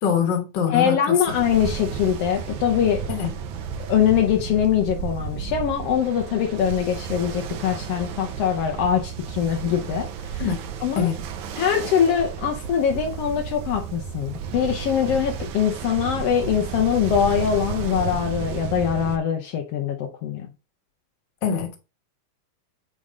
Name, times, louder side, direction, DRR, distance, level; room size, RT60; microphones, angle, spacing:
voice 1, 0.0-1.2 3.1-3.4 10.4-10.6 10.9-11.2 21.4-21.7, left 7 dB, 50° left, 1.3 m, -24 dB
voice 2, 0.7-3.0 3.8-10.1 10.3-10.5 10.8-11.1 11.6-20.5, left 8 dB, 85° left, 1.3 m, -23 dB
Ocean, 1.3-19.2, right 7 dB, 75° right, 2.1 m, -32 dB
8.9 x 3.2 x 3.8 m
omnidirectional pair, 3.7 m